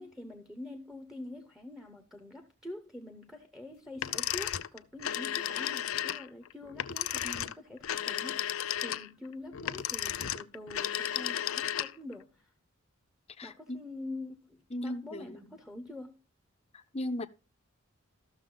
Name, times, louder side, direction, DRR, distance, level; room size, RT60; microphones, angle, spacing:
voice 1, 0.0-12.5 13.4-16.2, left 1 dB, ahead, 0.8 m, -45 dB
sound 1, 4.0-12.1, left 11 dB, 75° left, 0.5 m, -34 dB
voice 2, 13.4-13.8 14.7-15.5 16.7-17.3, left 1 dB, 30° left, 0.6 m, -37 dB
14.0 x 6.5 x 3.8 m
head